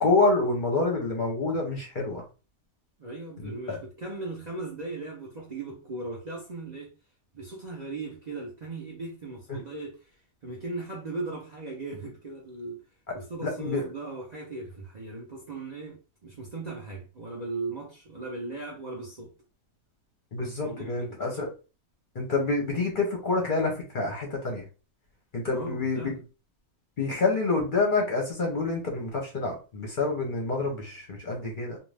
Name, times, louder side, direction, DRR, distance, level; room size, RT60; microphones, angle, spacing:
voice 1, 0.0-2.2 3.4-3.8 9.5-9.6 13.1-13.8 20.3-21.5 22.1-24.6 25.3-26.1 27.0-31.8, left 3 dB, 45° left, 0.8 m, -27 dB
voice 2, 3.0-6.9 7.3-12.8 13.1-19.3 20.6-21.2 25.5-26.3, right 3 dB, 45° right, 0.6 m, -38 dB
2.4 x 2.4 x 3.3 m
omnidirectional pair, 1.4 m